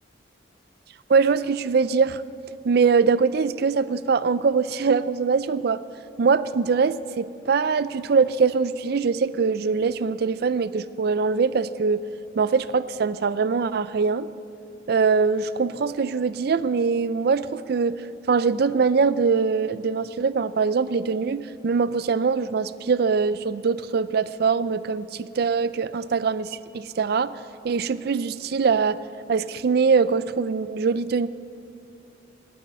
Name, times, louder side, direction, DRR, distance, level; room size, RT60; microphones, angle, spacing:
voice 1, 1.1-2.2 2.6-5.8 6.2-12.0 12.4-14.3 14.9-27.4 27.6-29.0 29.3-31.3, right 5 dB, 55° right, 16 dB, 0.4 m, -22 dB
11.5 x 9.3 x 9.5 m, 2.6 s
head